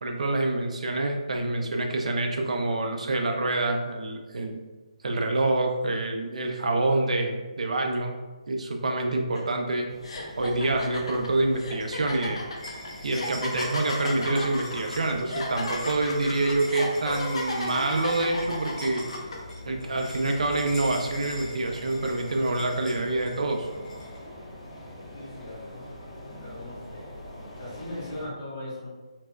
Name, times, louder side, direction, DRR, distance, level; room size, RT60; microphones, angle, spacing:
voice 1, 0.0-4.6 5.0-8.1 8.5-9.9 10.4-12.4 13.0-19.0 19.7-23.7, right 2 dB, 75° right, 3 dB, 0.4 m, -27 dB
sound 1, 9.4-9.5 10.0-19.4, left 2 dB, 55° left, 0.5 m, -34 dB
sound 2, 9.9-28.3, left 1 dB, 75° left, 1.4 m, -44 dB
sound 3, 12.6-24.2, left 1 dB, 5° left, 0.4 m, -44 dB
voice 2, 25.1-25.8 26.4-27.0 27.6-28.9, left 1 dB, 25° left, -8 dB, 1.0 m, -39 dB
4.2 x 2.0 x 2.3 m, 1.2 s
hypercardioid pair, 170°, 4 cm